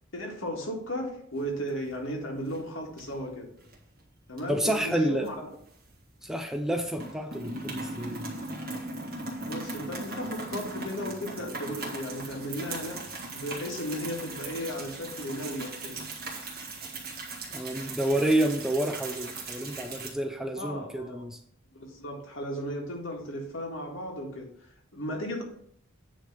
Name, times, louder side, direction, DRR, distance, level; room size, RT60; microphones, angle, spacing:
voice 1, 0.1-3.5 4.3-5.3 9.5-13.0 13.3-16.0 20.6-21.2 21.7-24.5 24.9-25.4, equal, 65° left, 1 dB, 1.8 m, -35 dB
sound 1, 1.4-2.1 2.4-2.6 3.0-3.8 4.3-6.3 6.5-6.7 6.9-20.1, right 2 dB, 45° right, 1.8 m, -38 dB
voice 2, 4.5-5.3 6.2-8.2 17.5-21.4, right 1 dB, ahead, 5 dB, 0.5 m, -29 dB
9.1 x 3.3 x 6.7 m, 0.67 s
head